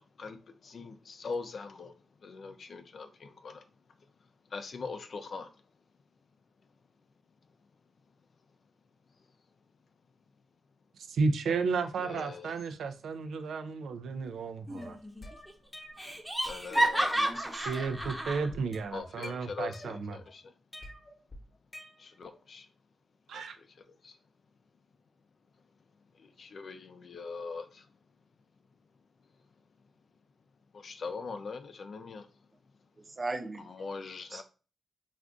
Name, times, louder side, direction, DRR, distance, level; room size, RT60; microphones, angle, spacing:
voice 1, 0.6-1.9 2.2-3.6 4.5-5.5 12.0-12.5 16.5-16.9 18.9-20.4 22.0-22.7 23.3-23.4 24.0-24.1 26.4-27.8 30.7-32.3 33.7-34.4, left 4 dB, 60° left, 0.4 m, -41 dB
voice 2, 11.0-15.0 17.6-20.2 23.3-23.6, right 4 dB, 85° right, 0.4 m, -33 dB
Laughter, 14.7-15.2 15.5-15.6 16.0-18.5, right 1 dB, 5° right, 0.7 m, -31 dB
sound 1, 14.8-16.2 16.5-17.3 17.7-18.2 18.5-20.3 20.7-22.3, left 1 dB, 30° left, 0.9 m, -49 dB
voice 3, 16.7-17.9 33.2-33.6 34.3-34.4, right 2 dB, 40° right, 0.6 m, -39 dB
2.4 x 2.3 x 3.6 m
cardioid pair, 60°, 0 cm